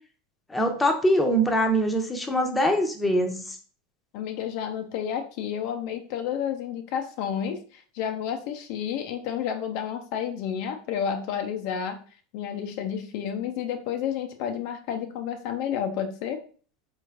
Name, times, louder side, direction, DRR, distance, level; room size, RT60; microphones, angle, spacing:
voice 1, 0.5-3.6, equal, 10° left, 4 dB, 0.7 m, -23 dB
voice 2, 4.1-12.0 12.3-16.4, left 8 dB, 65° left, 6 dB, 0.5 m, -31 dB
4.1 x 3.1 x 2.4 m, 0.42 s
hypercardioid pair, 100°, 0 cm